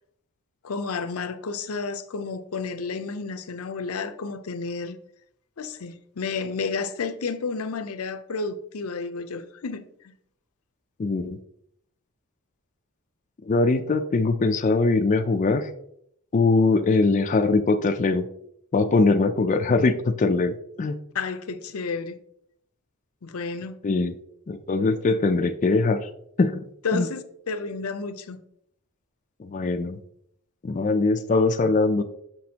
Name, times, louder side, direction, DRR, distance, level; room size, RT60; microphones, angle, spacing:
voice 1, 0.6-5.0 5.6-10.1 21.1-22.2 23.2-23.8 26.8-28.4, left 4 dB, 80° left, 0.6 m, -31 dB
voice 2, 11.0-11.4 13.4-15.7 16.3-18.2 18.7-21.0 23.8-24.1 24.5-26.1 26.4-26.6 26.9-27.1 29.4-30.0 30.6-32.0, left 3 dB, 35° left, 0.4 m, -22 dB
6.9 x 6.0 x 2.8 m
head